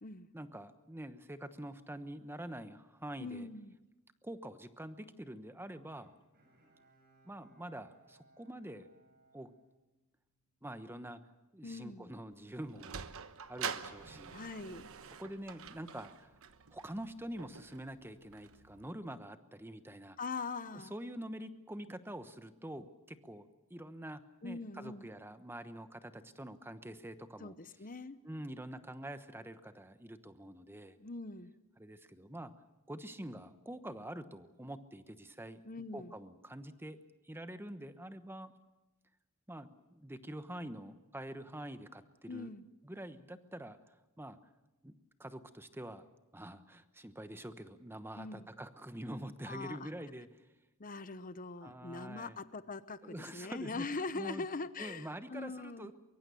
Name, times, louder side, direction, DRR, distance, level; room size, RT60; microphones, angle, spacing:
voice 1, 0.3-3.5 4.2-6.1 7.2-8.9 9.3-9.5 10.6-11.2 11.5-13.1 13.5-14.4 15.2-16.4 16.7-20.2 20.7-27.5 28.2-31.0 31.8-32.5 32.9-35.6 35.9-37.0 37.2-38.5 39.5-42.5 42.8-43.8 44.2-44.4 44.8-44.9 45.2-46.0 46.3-50.3 51.6-52.4 53.0-54.4 54.8-55.9, right 1 dB, 10° right, 10 dB, 1.0 m, -46 dB
voice 2, 3.2-3.7 11.6-12.1 14.3-14.9 20.2-20.9 24.4-25.1 27.4-28.2 31.0-31.5 35.6-36.1 42.3-42.6 48.2-48.5 49.5-49.9 50.8-55.9, left 3 dB, 40° left, 13 dB, 0.9 m, -42 dB
Bowed string instrument, 5.9-10.4 10.9-11.0, right 2 dB, 45° right, 7.3 m, -67 dB
Sliding door, 12.3-18.9, right 7 dB, 65° right, 1.1 m, -46 dB
23.5 x 23.0 x 7.0 m, 1.1 s
head